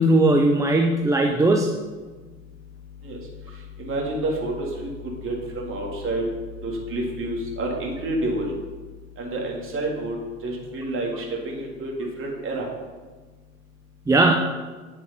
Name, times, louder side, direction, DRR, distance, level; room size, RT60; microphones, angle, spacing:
voice 1, 0.0-1.7 14.1-14.3, right 2 dB, 10° right, 2 dB, 0.7 m, -18 dB
voice 2, 3.8-4.9 5.2-6.2 6.6-8.5 9.2-10.2 10.4-11.9 12.2-12.7, right 2 dB, 30° right, -1 dB, 3.2 m, -28 dB
9.9 x 7.6 x 5.5 m, 1.4 s
figure-of-eight pair, 80°, 39 cm